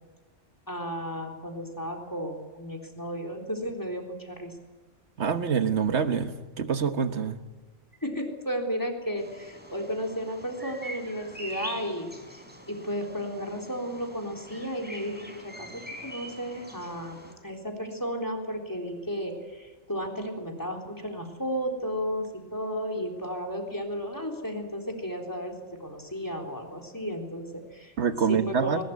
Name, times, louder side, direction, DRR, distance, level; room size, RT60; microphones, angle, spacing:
voice 1, 0.7-4.5 8.0-12.1 12.7-15.7 16.0-27.9 28.3-28.8, equal, 15° left, 4 dB, 3.7 m, -33 dB
voice 2, 5.2-6.3 6.6-7.4 28.0-28.8, right 6 dB, 55° right, 9 dB, 1.6 m, -26 dB
Bird vocalization bird call bird song, 9.2-17.3, equal, 5° right, 4.3 m, -44 dB
21.0 x 20.5 x 9.5 m, 1.2 s
omnidirectional pair, 1.4 m